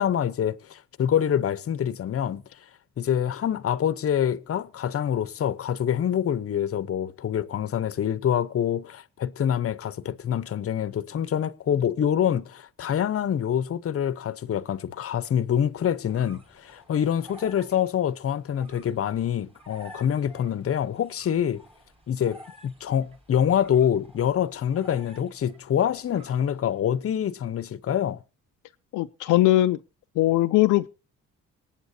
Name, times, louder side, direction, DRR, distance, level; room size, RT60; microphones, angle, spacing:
voice 1, 0.0-2.4 3.0-21.6 22.1-28.2, left 9 dB, 50° left, 0.9 m, -26 dB
sound 1, 15.7-26.8, equal, 20° right, 5.6 m, -52 dB
voice 2, 28.9-29.8 30.2-30.9, left 16 dB, 85° left, 0.6 m, -20 dB
25.5 x 9.1 x 2.8 m
cardioid pair, 90°, 30 cm